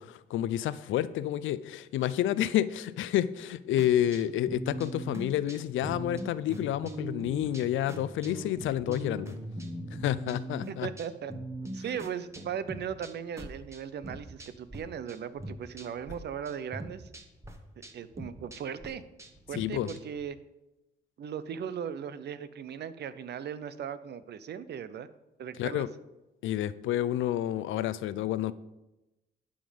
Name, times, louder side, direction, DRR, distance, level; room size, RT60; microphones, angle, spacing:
voice 1, 0.0-9.4 9.9-10.9 19.5-19.9 25.6-25.9 26.4-28.5, left 12 dB, 80° left, 0.5 m, -29 dB
sound 1, 3.8-14.8 15.1-16.2 16.4-20.2, right 1 dB, 15° right, 1.3 m, -41 dB
voice 2, 10.7-11.3 11.7-17.1 17.8-19.0 19.5-20.4 21.2-25.1 25.4-25.9, right 8 dB, 55° right, 0.7 m, -38 dB
11.5 x 5.2 x 5.3 m
cardioid pair, 90°, 20 cm